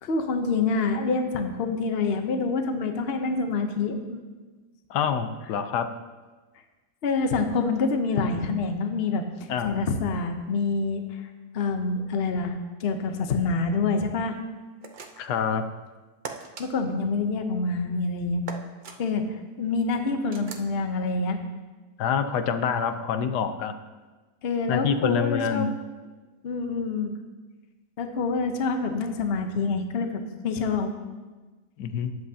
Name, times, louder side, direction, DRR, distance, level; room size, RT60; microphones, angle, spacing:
voice 1, 0.0-4.2 7.0-9.2 9.6-11.0 11.5-12.5 12.8-14.3 16.6-18.4 19.0-21.4 24.4-25.7 26.4-27.1 28.0-30.9, left 4 dB, 45° left, 6 dB, 0.9 m, -26 dB
voice 2, 4.9-5.9 9.5-9.8 15.2-15.7 22.0-23.7 24.7-25.8 31.8-32.2, left 7 dB, 90° left, 8 dB, 1.3 m, -26 dB
sound 1, 14.8-15.4 16.2-16.7 18.5-19.0 20.3-20.7, right 4 dB, 45° right, 0.6 m, -39 dB
18.5 x 7.9 x 2.8 m, 1.3 s
omnidirectional pair, 1.7 m